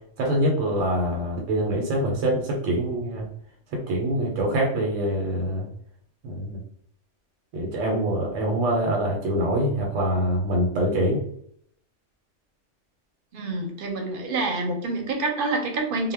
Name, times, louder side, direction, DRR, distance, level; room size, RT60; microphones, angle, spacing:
voice 1, 0.2-3.3 3.7-5.7 6.2-6.6 7.5-11.2, right 1 dB, 85° right, -1 dB, 1.0 m, -24 dB
voice 2, 13.3-16.1, right 2 dB, 55° right, 2 dB, 0.7 m, -27 dB
2.1 x 2.0 x 3.3 m, 0.67 s
omnidirectional pair, 1.2 m